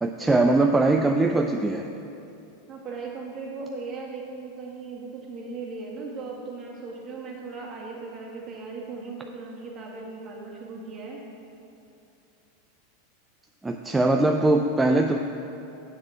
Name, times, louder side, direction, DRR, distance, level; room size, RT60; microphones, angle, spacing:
voice 1, 0.0-1.8 13.6-15.2, right 2 dB, 10° right, 3 dB, 0.4 m, -21 dB
voice 2, 2.7-11.2, right 4 dB, 35° right, -2 dB, 1.9 m, -37 dB
7.7 x 6.0 x 7.1 m, 2.7 s
hypercardioid pair, 115°, 0 cm